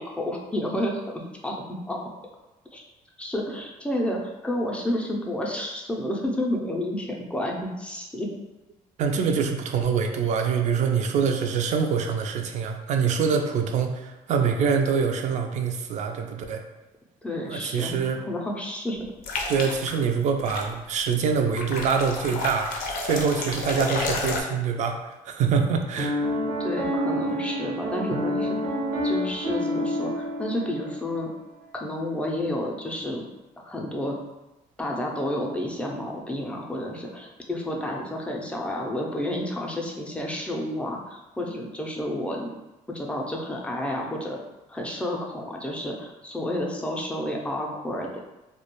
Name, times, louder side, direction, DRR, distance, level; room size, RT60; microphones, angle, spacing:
voice 1, 0.0-1.6 1.9-2.0 2.7-2.8 3.2-8.3 17.2-19.1 26.6-28.8 29.0-31.3 31.7-33.2 33.6-34.2 34.8-42.5 42.9-44.4 44.7-48.2, left 1 dB, 10° left, -1 dB, 0.4 m, -30 dB
voice 2, 9.0-16.6 17.4-18.2 19.5-22.7 23.0-26.2, right 6 dB, 55° right, 5 dB, 0.4 m, -25 dB
sound 1, 19.2-20.0 20.4-20.7 21.6-24.4, left 3 dB, 75° left, 0.5 m, -31 dB
Piano, 26.0-31.3, equal, 90° right, 0.7 m, -28 dB
2.3 x 2.1 x 2.9 m, 1.0 s
cardioid pair, 105°, 15 cm